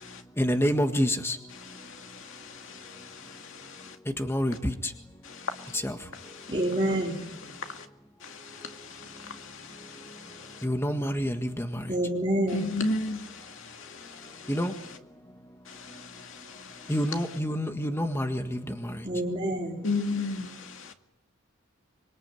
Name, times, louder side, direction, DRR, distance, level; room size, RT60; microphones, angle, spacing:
voice 1, 0.4-1.4 4.3-4.7 5.8-5.9 10.6-11.7 14.5-14.7 16.9-18.4, equal, 10° left, 1.7 m, -27 dB
voice 2, 1.5-4.0 5.2-5.8 6.1-6.5 7.5-7.8 8.2-10.6 12.5-14.6 15.7-16.9 19.8-20.9, left 3 dB, 60° left, 2.4 m, -36 dB
voice 3, 6.5-7.2 11.9-12.7 19.0-19.8, right 1 dB, 25° right, 4.4 m, -27 dB
26.0 x 22.5 x 9.2 m
head